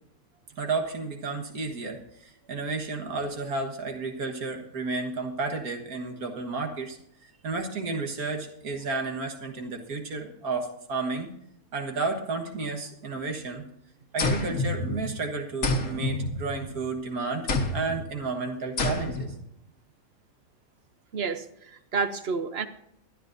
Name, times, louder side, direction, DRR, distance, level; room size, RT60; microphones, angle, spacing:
voice 1, 0.6-7.0 7.4-11.3 11.7-13.7 14.1-19.3, right 3 dB, 75° right, 3 dB, 2.0 m, -32 dB
sound 1, 14.2-15.2 15.6-16.9 17.5-18.0 18.8-19.4, left 2 dB, 60° left, 1.8 m, -28 dB
voice 2, 21.1-22.7, right 5 dB, 50° right, 10 dB, 0.9 m, -30 dB
23.0 x 9.9 x 2.7 m, 0.76 s
omnidirectional pair, 1.6 m